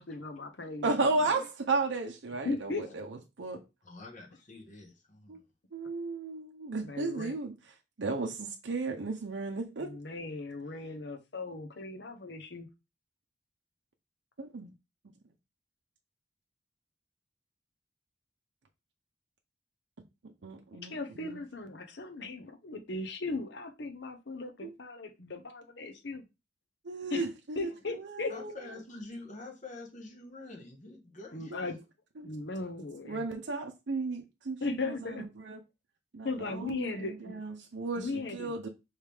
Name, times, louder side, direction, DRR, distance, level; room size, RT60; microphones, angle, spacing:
voice 1, 0.0-1.4 2.4-2.9 6.8-7.3 9.8-12.7 20.8-26.2 27.1-27.3 27.5-28.3 31.3-31.8 32.2-33.2 34.6-35.3 36.2-37.4 37.9-38.5, left 3 dB, 65° left, 0.8 m, -37 dB
voice 2, 0.8-3.6 5.3-5.4 5.7-7.5 8.0-10.0 14.4-14.7 20.4-21.4 24.6-24.7 26.8-28.6 31.5-31.7 32.2-32.3 33.1-35.6 36.1-38.7, right 3 dB, 70° right, 0.6 m, -34 dB
voice 3, 3.8-5.4 28.3-31.6, left 2 dB, 40° left, 1.3 m, -46 dB
4.8 x 3.2 x 3.4 m
head